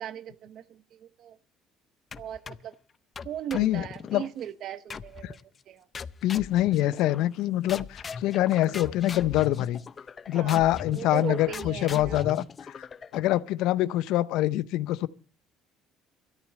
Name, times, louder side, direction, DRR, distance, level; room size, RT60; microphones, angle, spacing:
voice 1, 0.0-1.4 2.2-2.7 3.2-5.4 5.7-5.8 10.3-12.3, right 10 dB, 60° right, 1.0 m, -38 dB
sound 1, 2.1-2.7 3.2-4.3 4.9-5.4 5.9-7.4 7.7-13.4, left 6 dB, 35° left, 0.6 m, -40 dB
voice 2, 3.5-3.8 4.1-4.2 5.2-5.3 6.2-9.8 10.3-12.9 13.1-15.1, left 14 dB, 75° left, 0.6 m, -25 dB
13.5 x 8.6 x 7.4 m
supercardioid pair, 90°, 0 cm